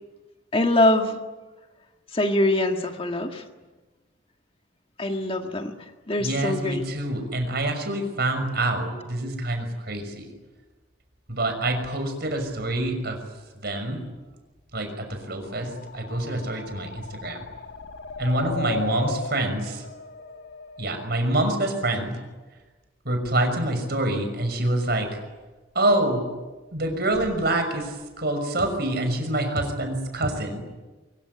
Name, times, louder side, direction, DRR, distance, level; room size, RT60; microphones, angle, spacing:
voice 1, 0.5-1.2 2.1-3.4 5.0-5.7 6.1-6.8, left 1 dB, 30° left, 4 dB, 1.8 m, -23 dB
voice 2, 6.2-10.3 11.3-13.2 13.5-14.0 14.7-17.5 18.2-19.9 20.8-22.2 23.0-25.2 25.7-26.3 26.7-30.6, right 1 dB, 55° right, 6 dB, 6.0 m, -26 dB
sound 1, 15.5-21.3, left 2 dB, 65° left, 1.6 m, -35 dB
24.5 x 23.5 x 9.7 m, 1.2 s
head